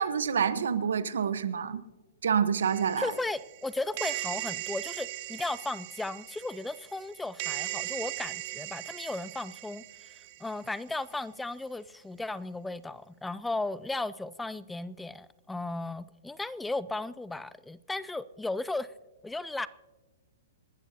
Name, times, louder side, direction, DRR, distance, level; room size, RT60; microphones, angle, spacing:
voice 1, 0.0-1.8 2.2-3.1, right 7 dB, 80° right, 13 dB, 1.1 m, -27 dB
sound 1, 2.6-10.7, right 17 dB, 45° right, 0.9 m, -39 dB
voice 2, 3.0-18.9 19.2-19.7, left 2 dB, 5° left, 18 dB, 0.4 m, -35 dB
27.5 x 13.0 x 2.8 m, 1.2 s
hypercardioid pair, 135°, 0 cm